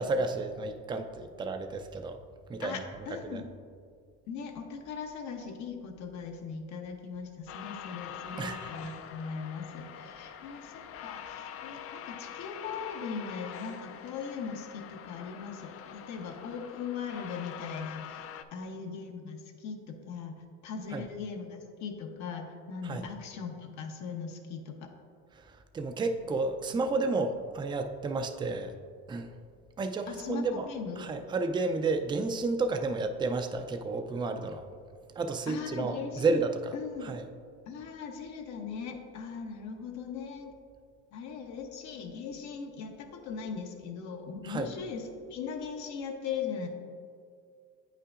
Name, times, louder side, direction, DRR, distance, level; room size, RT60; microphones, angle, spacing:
voice 1, 0.0-2.2 2.5-2.8 3.3-3.4 8.4-8.9 20.9-21.0 22.8-23.1 25.7-28.7 29.1-29.3 29.8-30.7 31.0-34.6 35.2-36.7 37.0-37.2 44.4-44.7, right 3 dB, 15° right, 7 dB, 0.4 m, -31 dB
voice 2, 2.6-3.5 4.3-20.3 20.6-24.9 30.1-31.1 35.5-36.4 36.7-37.2 37.7-40.5 41.1-46.7, left 6 dB, 75° left, 3 dB, 0.9 m, -39 dB
sound 1, 7.5-18.4, left 9 dB, 50° left, 0.4 m, -45 dB
8.9 x 5.6 x 2.5 m, 2.2 s
cardioid pair, 110°, 29 cm